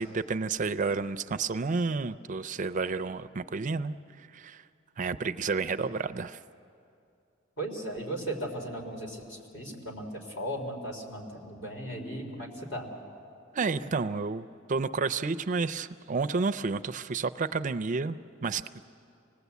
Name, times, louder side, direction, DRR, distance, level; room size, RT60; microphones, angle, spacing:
voice 1, 0.0-4.6 5.0-6.4 13.5-18.8, right 4 dB, 40° right, 11 dB, 0.5 m, -31 dB
voice 2, 7.6-12.9, right 1 dB, 65° left, 1 dB, 3.6 m, -37 dB
26.0 x 19.0 x 8.2 m, 2.5 s
head